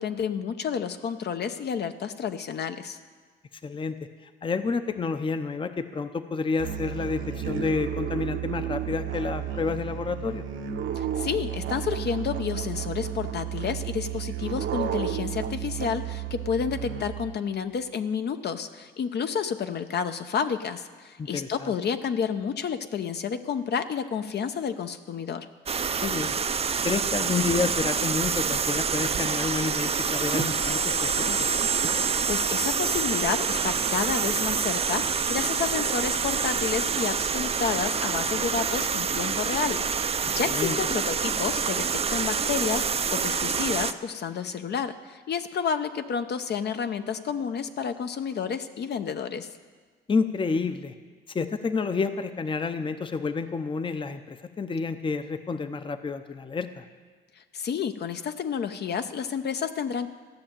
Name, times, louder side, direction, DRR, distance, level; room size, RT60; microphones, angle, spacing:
voice 1, 0.0-3.0 11.0-25.5 32.3-49.5 57.4-60.1, left 7 dB, 55° left, 8 dB, 0.8 m, -30 dB
voice 2, 3.6-3.9 4.4-10.4 21.2-21.7 26.0-26.3 26.8-31.5 40.5-40.8 50.1-50.9 51.3-56.8, left 4 dB, 25° left, 10 dB, 0.7 m, -29 dB
Musical instrument, 6.6-17.4, right 10 dB, 75° right, 1.1 m, -32 dB
sound 1, 25.7-43.9, right 6 dB, 30° right, 0.5 m, -27 dB
14.5 x 6.4 x 8.8 m, 1.5 s
cardioid pair, 90°, 20 cm